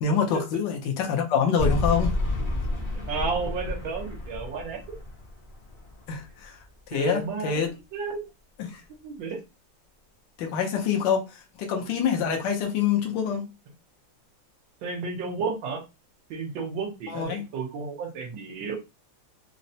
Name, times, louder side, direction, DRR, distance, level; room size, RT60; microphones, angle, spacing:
voice 1, 0.0-2.2 6.1-6.6 6.9-7.7 8.6-8.8 10.4-13.5 17.1-17.4, left 7 dB, 75° left, 1.3 m, -26 dB
sound 1, 1.6-6.8, left 2 dB, 45° left, 0.6 m, -30 dB
voice 2, 3.1-5.0 6.9-8.3 8.9-9.4 14.8-15.8 16.3-18.8, right 4 dB, 85° right, 1.6 m, -32 dB
4.0 x 2.0 x 2.7 m
omnidirectional pair, 2.0 m